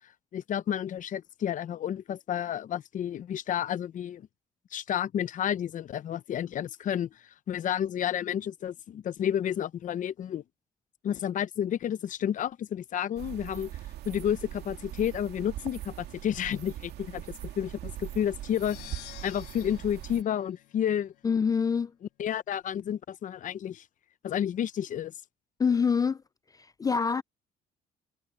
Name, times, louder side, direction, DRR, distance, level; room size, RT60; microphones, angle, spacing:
voice 1, 0.3-4.3 4.7-7.1 7.5-10.4 11.0-13.7 14.0-18.8 19.2-21.1 22.2-23.8 24.2-25.1, left 10 dB, 50° left, 0.8 m, -31 dB
sound 1, 13.2-20.2, right 13 dB, 75° right, 2.2 m, -41 dB
sound 2, 18.4-21.3, left 18 dB, 90° left, 0.8 m, -50 dB
voice 2, 21.2-21.9 25.6-26.2 26.6-27.2, left 6 dB, 20° left, 0.4 m, -25 dB
cardioid pair, 110°, 17 cm